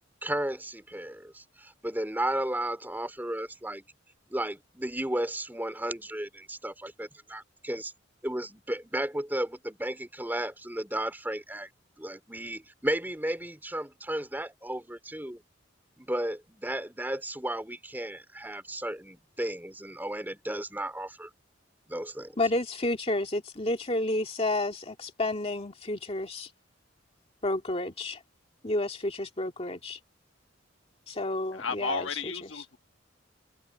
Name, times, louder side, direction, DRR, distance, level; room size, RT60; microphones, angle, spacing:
voice 1, 0.2-3.8 4.3-7.9 8.2-11.7 12.0-15.4 16.0-21.3 21.9-22.4, right 1 dB, 10° right, 4.0 m, -34 dB
voice 2, 22.4-26.5 27.4-28.2 28.6-30.0 31.1-32.1 32.4-32.6, left 2 dB, 30° left, 2.3 m, -30 dB
voice 3, 31.5-32.8, left 4 dB, 75° left, 1.3 m, -33 dB
head